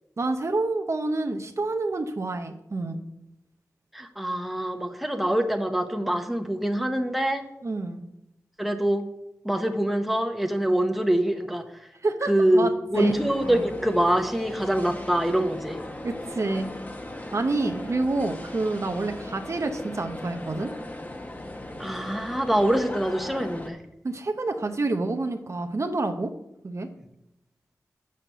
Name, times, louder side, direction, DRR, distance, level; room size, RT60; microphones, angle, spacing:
voice 1, 0.2-3.0 7.6-8.0 12.0-13.1 13.5-13.6 16.0-16.7 17.3-20.7 24.0-26.3 26.6-26.9, right 2 dB, 50° right, 6 dB, 0.8 m, -28 dB
voice 2, 3.9-7.4 8.6-9.1 9.4-11.7 12.2-15.8 21.8-23.8, right 1 dB, ahead, 6 dB, 1.0 m, -25 dB
musee.Victoria.Londres hall.entree, 12.9-23.7, left 1 dB, 25° left, 1.1 m, -38 dB
6.4 x 5.9 x 6.8 m, 0.83 s
cardioid pair, 50°, 6 cm